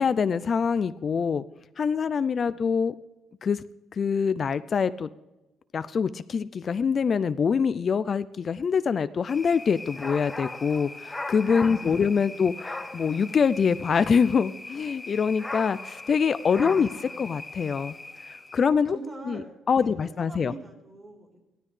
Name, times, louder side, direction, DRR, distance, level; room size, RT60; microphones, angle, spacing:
voice 1, 0.0-1.4 1.8-2.9 3.4-3.6 3.9-5.1 5.7-16.9 17.2-17.9 18.3-19.0 19.3-19.4 19.7-20.5, left 6 dB, 40° left, 14 dB, 0.3 m, -24 dB
sound 1, 9.3-18.7, left 2 dB, 15° left, 0.8 m, -39 dB
voice 2, 11.7-12.5 16.5-17.2 18.9-21.4, right 2 dB, 30° right, 0 dB, 3.5 m, -43 dB
16.0 x 12.5 x 3.3 m, 1.0 s
cardioid pair, 105°, 0 cm